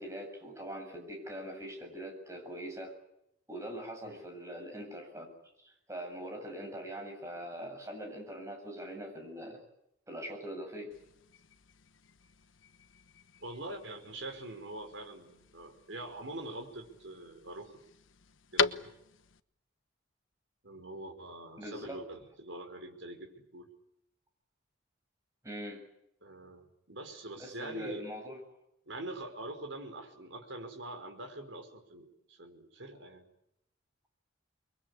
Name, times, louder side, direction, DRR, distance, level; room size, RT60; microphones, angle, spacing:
voice 1, 0.0-2.9 3.5-5.3 5.6-9.6 10.1-10.9 21.6-22.0 25.4-25.8 27.4-28.4, equal, 15° right, 3 dB, 7.6 m, -42 dB
sound 1, 10.9-19.4, left 5 dB, 80° left, 1.1 m, -40 dB
voice 2, 13.4-17.7 18.5-18.9 20.6-23.7 26.2-28.0 28.9-33.3, right 1 dB, 70° right, 4 dB, 5.4 m, -44 dB
29.0 x 22.5 x 8.6 m, 0.80 s
head